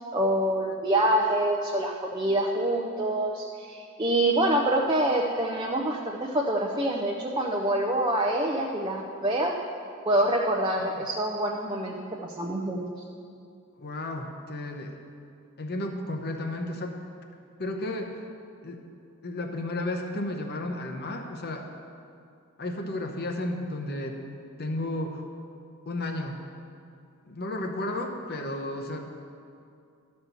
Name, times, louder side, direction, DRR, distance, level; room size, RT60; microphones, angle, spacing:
voice 1, 0.1-9.5 10.1-12.8, right 1 dB, 20° right, 0 dB, 0.5 m, -26 dB
voice 2, 13.8-15.0 15.6-17.0 17.6-18.2 18.6-18.8 19.2-21.7 22.6-24.2 24.6-25.2 25.9-26.4 27.3-29.2, left 1 dB, 45° left, 4 dB, 0.9 m, -33 dB
12.5 x 4.4 x 6.8 m, 2.5 s
head